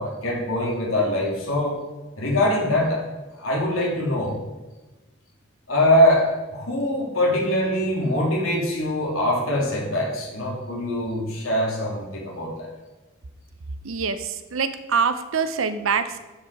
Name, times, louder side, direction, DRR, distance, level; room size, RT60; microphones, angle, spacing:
voice 1, 0.0-1.7 2.2-3.0 3.4-4.4 5.7-12.7, left 1 dB, 85° left, -3 dB, 2.9 m, -23 dB
voice 2, 13.8-16.2, right 5 dB, 80° right, 11 dB, 0.7 m, -25 dB
12.0 x 5.4 x 4.8 m, 1.1 s
head